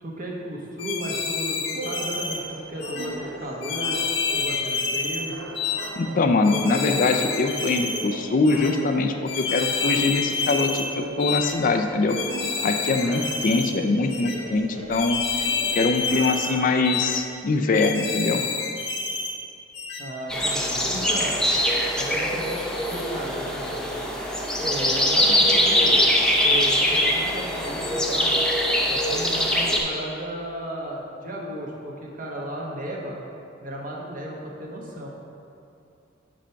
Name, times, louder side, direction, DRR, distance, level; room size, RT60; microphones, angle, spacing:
voice 1, 0.0-4.0 4.3-5.4 20.0-21.4 22.0-23.8 24.6-26.0 26.3-28.4 28.9-33.2 33.6-35.1, right 1 dB, 45° right, -2 dB, 1.2 m, -34 dB
sound 1, 0.8-2.4 2.8-3.1 3.6-5.2 5.6-5.9 6.4-8.0 8.4-8.7 9.3-10.9 11.2-11.5 12.1-13.7 14.1-14.4 14.9-16.5 16.8-17.2 17.7-19.3 19.7-20.0, left 5 dB, 60° left, 1.1 m, -28 dB
sound 2, 1.7-17.2, right 2 dB, 90° right, 0.9 m, -39 dB
voice 2, 6.0-12.2 12.6-15.2 15.7-18.4, left 3 dB, 45° left, 6 dB, 0.4 m, -23 dB
sound 3, 20.3-29.8, equal, 5° left, 0.6 m, -22 dB
6.5 x 5.1 x 5.7 m, 2.5 s
head